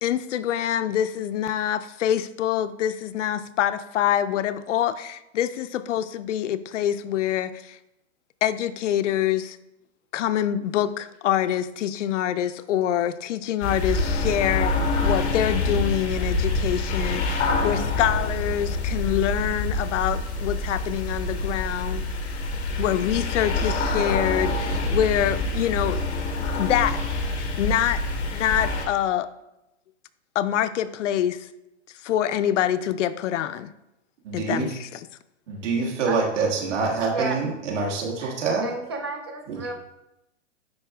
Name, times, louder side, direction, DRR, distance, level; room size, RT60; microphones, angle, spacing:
voice 1, 0.0-7.8 8.4-9.6 10.1-14.7 15.0-22.0 22.8-27.0 27.4-29.3 30.4-31.5 32.0-33.7 34.3-35.1, left 11 dB, 90° left, 0.5 m, -25 dB
sound 1, 13.6-28.9, left 2 dB, 65° left, 1.4 m, -26 dB
voice 2, 34.2-34.7 35.5-38.7 39.5-39.6, right 4 dB, 80° right, 1.9 m, -26 dB
voice 3, 38.6-39.7, right 3 dB, 25° right, 0.4 m, -31 dB
10.5 x 4.3 x 2.3 m
supercardioid pair, 175°, 36 cm